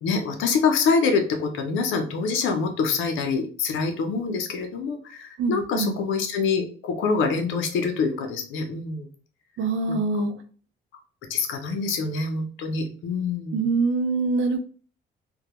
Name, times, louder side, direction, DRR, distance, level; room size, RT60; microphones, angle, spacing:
voice 1, 0.0-9.1 9.9-10.1 11.3-13.7, left 4 dB, 80° left, 4 dB, 0.5 m, -25 dB
voice 2, 5.4-6.0 9.6-10.3 13.5-14.6, right 3 dB, 80° right, 8 dB, 0.5 m, -24 dB
2.2 x 2.0 x 2.9 m, 0.41 s
cardioid pair, 90°, 20 cm